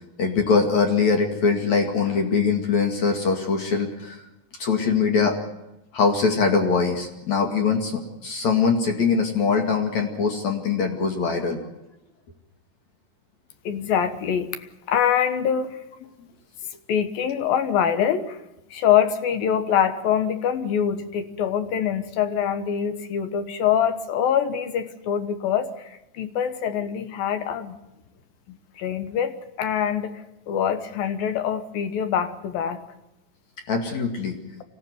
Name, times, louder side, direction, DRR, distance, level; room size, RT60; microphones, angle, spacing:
voice 1, 0.2-4.2 4.6-5.3 5.9-11.6 33.7-34.4, left 5 dB, 55° left, 3 dB, 3.2 m, -22 dB
voice 2, 13.6-15.8 16.9-18.4 18.7-27.8 28.5-32.9, left 8 dB, 75° left, 9 dB, 3.1 m, -24 dB
25.0 x 16.5 x 9.5 m, 0.93 s
omnidirectional pair, 4.2 m